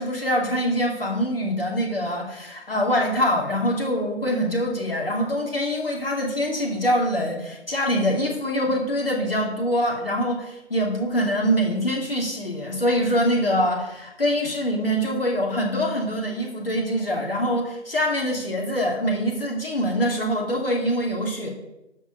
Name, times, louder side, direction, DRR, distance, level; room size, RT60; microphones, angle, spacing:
voice 1, 0.0-21.5, equal, 50° left, -1 dB, 2.7 m, -24 dB
11.5 x 4.8 x 6.4 m, 0.93 s
figure-of-eight pair, 165°, 36 cm